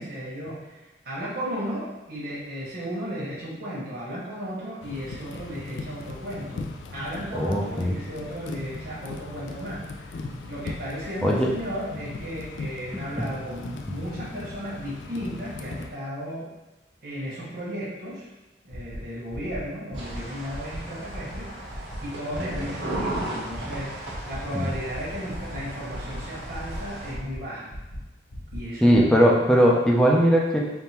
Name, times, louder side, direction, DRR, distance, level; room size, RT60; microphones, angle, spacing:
voice 1, 0.0-6.6 6.9-10.2 10.5-16.5 17.0-18.3 18.6-21.5 21.8-27.7 28.5-29.3, equal, 55° right, -8 dB, 1.2 m, -35 dB
sound 1, 4.8-15.9, left 3 dB, 80° left, 0.4 m, -38 dB
voice 2, 7.3-7.9 11.2-11.5 13.2-13.3 24.5-24.7 28.8-30.6, equal, 5° left, -3 dB, 0.5 m, -19 dB
sound 2, 18.7-19.0 19.3-19.6 19.9-20.2 20.5-20.8 21.1-21.4 21.7-22.0 22.3-22.6 22.9-23.2 23.5-23.8 24.1-24.4 24.7-25.0 25.3-25.6 25.9-26.2 26.5-26.8 27.1-27.4 27.7-28.0 28.3-28.6 28.9-29.0, equal, 50° left, 1.0 m, -38 dB
sound 3, 19.9-27.1, right 1 dB, 70° right, 1.4 m, -36 dB
3.6 x 2.6 x 4.3 m, 1.1 s
head